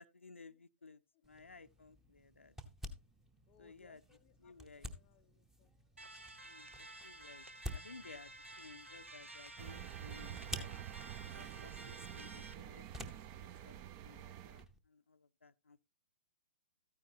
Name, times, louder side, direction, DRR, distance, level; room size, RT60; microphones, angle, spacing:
voice 1, 0.0-2.5 3.6-4.0 4.4-4.9 6.4-10.7 11.3-15.8, left 4 dB, 75° left, 0.6 m, -58 dB
sound 1, 1.2-14.8, equal, 5° right, 0.9 m, -52 dB
voice 2, 3.5-5.7, left 11 dB, 25° left, 0.5 m, -69 dB
sound 2, 6.0-12.5, right 2 dB, 80° right, 1.2 m, -53 dB
sound 3, 9.6-14.6, right 12 dB, 25° right, 0.5 m, -48 dB
13.5 x 9.7 x 2.8 m
figure-of-eight pair, 120°, 7 cm